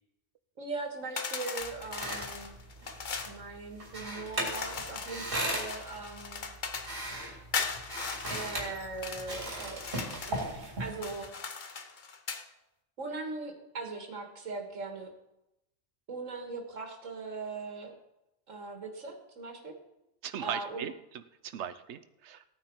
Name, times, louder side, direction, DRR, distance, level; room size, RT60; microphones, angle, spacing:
voice 1, 0.6-2.5 3.3-6.4 8.3-9.8 10.3-11.5 13.0-15.1 16.1-17.9 18.5-19.8 20.4-20.9, right 3 dB, 85° right, 3 dB, 2.0 m, -40 dB
sound 1, 1.2-3.4 4.4-7.0 7.5-9.3 9.7-10.4 10.9-12.5, left 5 dB, 45° left, 0.9 m, -38 dB
sound 2, 1.6-11.3, right 1 dB, 45° right, 3.4 m, -38 dB
voice 2, 20.2-22.4, right 9 dB, 65° right, 11 dB, 1.0 m, -39 dB
16.5 x 9.2 x 4.6 m, 0.90 s
omnidirectional pair, 1.3 m